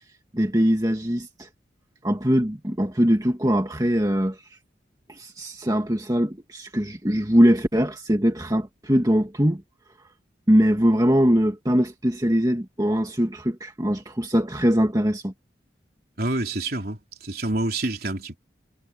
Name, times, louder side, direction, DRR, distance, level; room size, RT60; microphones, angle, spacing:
voice 1, 0.3-1.5 2.0-4.4 5.1-9.6 10.5-15.3, equal, 20° right, 1.9 m, -22 dB
voice 2, 16.2-18.4, right 2 dB, 55° right, 4.1 m, -27 dB
head